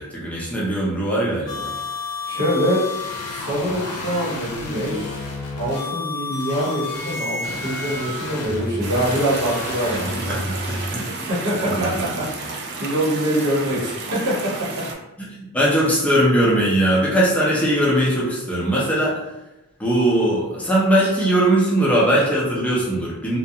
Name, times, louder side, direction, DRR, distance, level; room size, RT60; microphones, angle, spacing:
voice 1, 0.0-1.7 10.0-11.1 11.5-12.3 15.2-19.2 19.8-23.4, right 1 dB, 5° left, -5 dB, 0.5 m, -20 dB
sound 1, 1.5-10.9, left 2 dB, 80° left, 0.5 m, -30 dB
voice 2, 2.2-2.8 3.3-5.3 5.6-10.2 10.9-11.0 11.3-11.9 12.1-14.3, equal, 80° right, -6 dB, 1.1 m, -24 dB
sound 2, 8.8-15.0, right 3 dB, 50° right, 0.4 m, -32 dB
2.3 x 2.2 x 2.7 m, 0.95 s
head